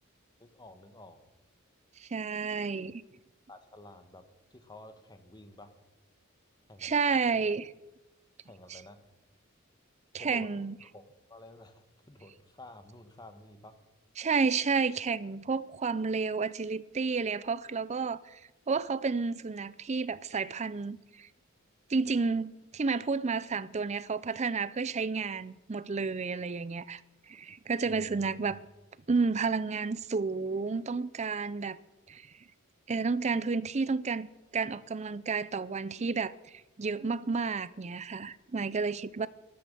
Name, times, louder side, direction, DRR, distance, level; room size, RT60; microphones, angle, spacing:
voice 1, 0.4-1.2 3.5-4.2 4.5-5.7 6.7-7.0 7.3-7.4 8.5-9.0 10.2-10.5 10.8-13.8 27.8-28.6, left 1 dB, 20° left, 1.3 m, -51 dB
voice 2, 2.0-3.0 6.8-7.7 8.7-8.8 10.1-10.7 14.2-18.4 18.7-21.3 21.9-27.0 27.3-28.6 29.1-31.8 32.1-32.2 32.9-34.3 34.5-36.3 36.8-39.3, right 4 dB, 35° right, 0.5 m, -31 dB
13.5 x 11.0 x 6.8 m
head